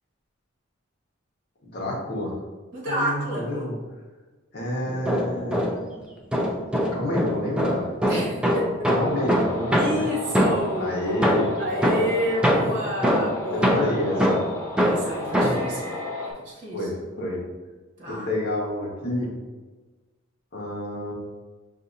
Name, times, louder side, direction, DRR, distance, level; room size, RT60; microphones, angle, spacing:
voice 1, 1.6-2.4 2.9-3.8 4.5-5.7 6.9-7.9 8.8-10.1 10.8-11.7 13.5-14.4 15.4-15.5 16.7-17.4 18.1-19.3 20.5-21.1, left 1 dB, 55° left, -4 dB, 1.2 m, -28 dB
voice 2, 2.7-3.6 8.1-8.9 9.7-10.9 11.6-13.9 14.8-16.9 18.0-18.3, equal, 40° right, -6 dB, 1.3 m, -30 dB
sound 1, 4.9-5.9 6.3-10.8 11.2-15.7, equal, 5° right, 0.5 m, -23 dB
sound 2, 9.0-16.3, left 1 dB, 15° left, 0.8 m, -34 dB
5.9 x 2.7 x 2.6 m, 1.3 s
head